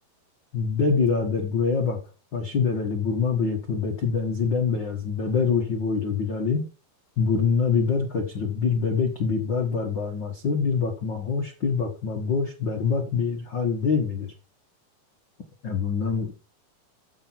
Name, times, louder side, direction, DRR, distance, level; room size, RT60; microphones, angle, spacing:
voice 1, 0.5-2.0 2.3-6.6 7.2-14.3 15.6-16.4, left 5 dB, 75° left, 3 dB, 1.0 m, -25 dB
13.5 x 5.4 x 4.5 m, 0.32 s
omnidirectional pair, 4.5 m